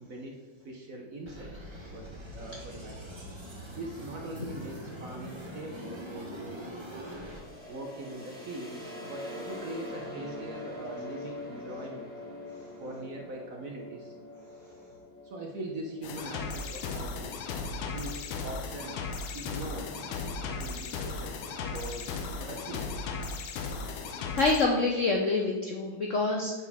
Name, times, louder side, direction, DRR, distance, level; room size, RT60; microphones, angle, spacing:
voice 1, 0.0-1.5 1.9-3.1 3.7-6.7 7.7-12.1 12.8-14.1 15.2-17.3 17.9-19.0 19.3-19.9 20.6-22.1 22.4-23.0, right 1 dB, 55° right, 0 dB, 1.0 m, -41 dB
sound 1, 1.2-7.4, equal, 20° right, 0.8 m, -43 dB
sound 2, 7.0-18.7, left 1 dB, 5° left, 1.6 m, -44 dB
sound 3, 16.0-24.6, left 4 dB, 80° left, 1.6 m, -36 dB
voice 2, 24.4-26.5, left 3 dB, 65° left, -1 dB, 0.7 m, -26 dB
8.2 x 6.2 x 3.5 m, 1.2 s
omnidirectional pair, 2.2 m